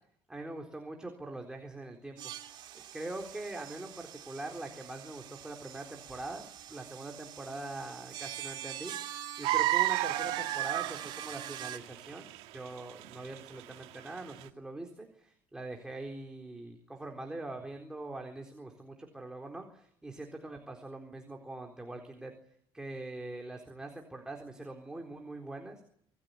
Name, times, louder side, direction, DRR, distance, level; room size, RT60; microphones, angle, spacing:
voice 1, 0.3-2.3 2.9-12.3 12.5-22.3 22.7-25.8, right 2 dB, 5° right, 2 dB, 4.0 m, -43 dB
sound 1, 2.2-11.8, right 11 dB, 50° right, 2.8 m, -44 dB
sound 2, 9.4-14.4, right 16 dB, 90° right, 2.1 m, -30 dB
27.5 x 19.0 x 9.7 m, 0.67 s
cardioid pair, 160°, 10 cm